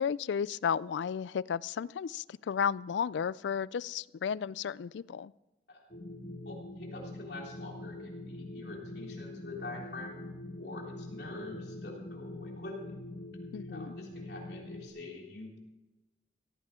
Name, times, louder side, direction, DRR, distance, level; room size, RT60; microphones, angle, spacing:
voice 1, 0.0-5.3 13.5-13.9, left 7 dB, 80° left, 21 dB, 0.3 m, -33 dB
sound 1, 5.9-14.9, left 1 dB, 45° left, 1.8 m, -44 dB
voice 2, 6.5-10.2 10.6-12.9 13.7-15.6, left 2 dB, 65° left, -1 dB, 3.5 m, -45 dB
16.5 x 15.0 x 3.7 m, 1.1 s
head